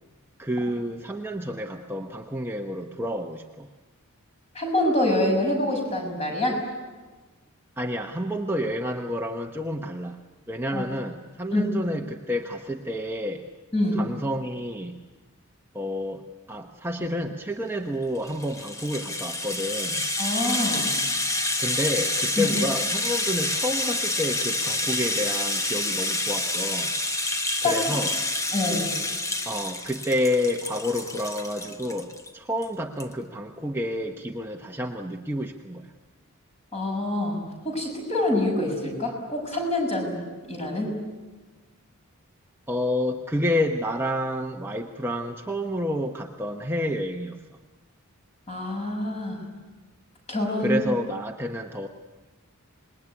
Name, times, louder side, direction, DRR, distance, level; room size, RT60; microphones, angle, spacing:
voice 1, 0.4-3.7 7.8-10.2 10.5-13.4 13.9-15.0 15.7-16.2 16.5-20.1 21.6-26.9 27.6-28.1 29.5-35.9 42.7-47.4 50.6-51.9, left 1 dB, 10° right, 2 dB, 1.0 m, -29 dB
voice 2, 4.5-6.6 10.7-10.8 11.5-11.6 13.7-14.0 20.2-20.9 22.4-22.5 27.6-27.8 28.5-28.9 36.7-40.2 40.5-41.0 48.5-49.4 50.3-50.8, left 1 dB, 30° left, 1 dB, 6.5 m, -26 dB
Rattle (instrument), 18.2-32.3 32.6-32.7 33.0-33.1, left 2 dB, 15° left, 1.1 m, -28 dB
27.0 x 20.5 x 9.7 m, 1.3 s
head